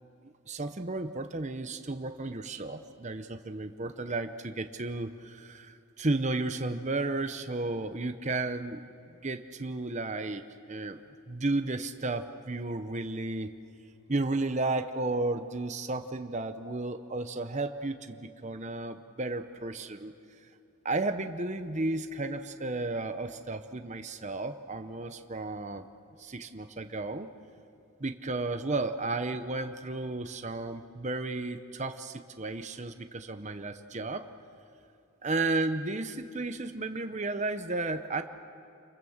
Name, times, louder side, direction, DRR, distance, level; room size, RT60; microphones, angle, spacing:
voice 1, 0.2-8.8 9.2-10.4 10.7-11.0 11.3-13.5 14.1-20.2 20.8-25.9 26.2-27.3 28.0-34.2 35.2-38.2, right 2 dB, 30° right, 8 dB, 0.8 m, -33 dB
27.5 x 24.5 x 7.3 m, 2.5 s
head